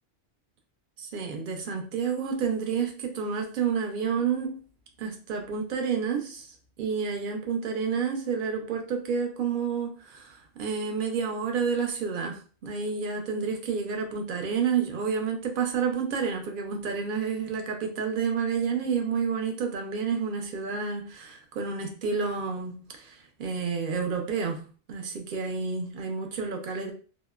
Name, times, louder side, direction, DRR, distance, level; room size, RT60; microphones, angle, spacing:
voice 1, 1.0-4.6 5.0-26.9, right 6 dB, 55° right, 3 dB, 0.6 m, -30 dB
2.8 x 2.0 x 2.2 m, 0.38 s
omnidirectional pair, 1.2 m